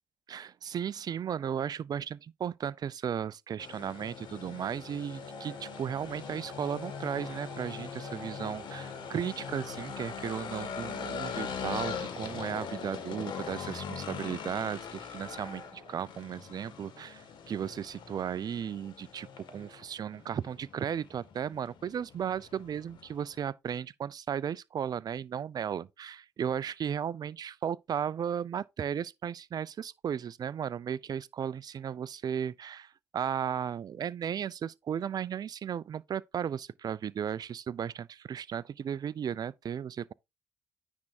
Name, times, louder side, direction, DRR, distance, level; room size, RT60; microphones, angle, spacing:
voice 1, 0.3-40.1, right 8 dB, 55° right, 0.5 m, -35 dB
sound 1, 3.6-23.5, left 6 dB, 70° left, 1.9 m, -41 dB
sound 2, 5.2-16.0, right 4 dB, 35° right, 2.0 m, -53 dB
9.7 x 3.5 x 4.3 m
supercardioid pair, 55°, 8 cm